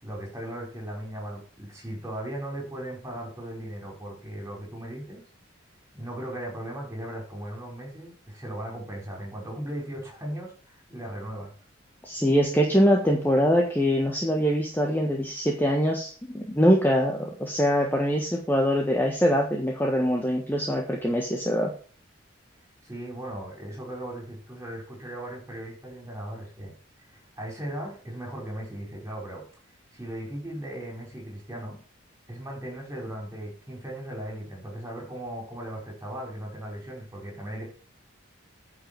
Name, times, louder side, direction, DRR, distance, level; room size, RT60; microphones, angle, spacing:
voice 1, 0.0-5.2 5.9-11.5 22.8-26.8 27.1-29.4 29.9-31.8 32.3-37.6, right 1 dB, 15° right, -1 dB, 5.1 m, -37 dB
voice 2, 12.0-21.7, equal, 10° left, 0 dB, 1.4 m, -23 dB
9.7 x 6.0 x 7.7 m, 0.41 s
head